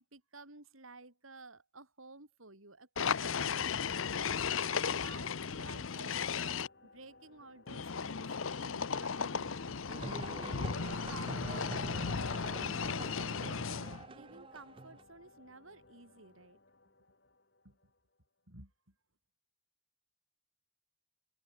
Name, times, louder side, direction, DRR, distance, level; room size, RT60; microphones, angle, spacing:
voice 1, 0.0-9.9 10.5-16.6 17.6-17.8 18.5-18.7, right 3 dB, 80° right, 5.2 m, -54 dB
sound 1, 3.0-6.7 7.7-14.1, left 6 dB, 75° left, 0.8 m, -35 dB
sound 2, 4.8-18.4, left 2 dB, 50° left, 3.9 m, -63 dB
sound 3, 9.9-15.0, right 3 dB, 25° right, 0.3 m, -46 dB
head